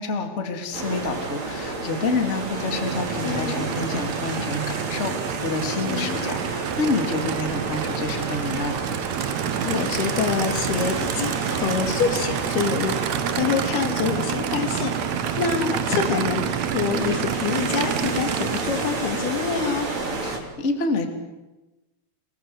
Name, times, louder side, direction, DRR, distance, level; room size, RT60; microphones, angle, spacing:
voice 1, 0.0-8.7 20.2-21.1, left 3 dB, 20° left, 4 dB, 2.4 m, -28 dB
sound 1, 0.7-20.4, right 3 dB, 45° right, 4.7 m, -31 dB
Aircraft / Idling, 2.4-19.3, right 11 dB, 80° right, 1.5 m, -29 dB
voice 2, 3.2-3.8 5.8-6.3 9.2-13.0 13.3-14.9 15.4-19.9, left 6 dB, 75° left, 5 dB, 4.4 m, -26 dB
29.5 x 19.5 x 7.9 m, 1.1 s
omnidirectional pair, 4.6 m